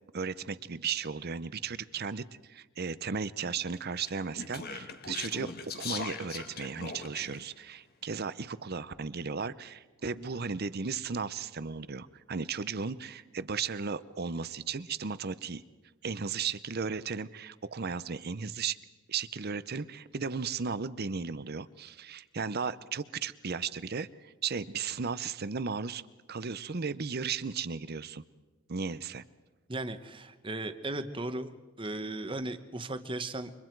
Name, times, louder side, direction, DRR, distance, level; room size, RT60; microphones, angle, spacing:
voice 1, 0.1-15.6 16.0-18.8 19.1-26.0 26.3-28.2 28.7-29.2, right 5 dB, 45° right, 16 dB, 0.7 m, -35 dB
Speech, 4.0-7.5, left 4 dB, 45° left, 1.6 m, -40 dB
voice 2, 29.7-33.5, right 2 dB, 25° right, 9 dB, 1.1 m, -36 dB
29.0 x 25.0 x 4.7 m, 1.2 s
head